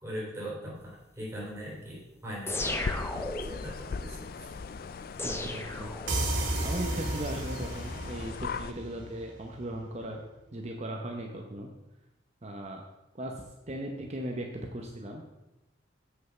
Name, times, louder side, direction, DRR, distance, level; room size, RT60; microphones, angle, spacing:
voice 1, 0.0-2.8 3.4-4.5, equal, 15° right, -6 dB, 3.3 m, -40 dB
sound 1, 2.5-3.7 5.2-6.5, left 2 dB, 15° left, 0.6 m, -35 dB
sound 2, 2.6-8.7, left 5 dB, 50° left, 0.4 m, -39 dB
voice 2, 5.2-5.9 6.6-10.2 10.5-11.7 12.4-12.8 13.1-15.2, right 1 dB, 35° right, 1 dB, 0.8 m, -37 dB
sound 3, 6.1-9.6, right 1 dB, 80° right, 1.9 m, -33 dB
8.0 x 6.3 x 5.6 m, 0.98 s
head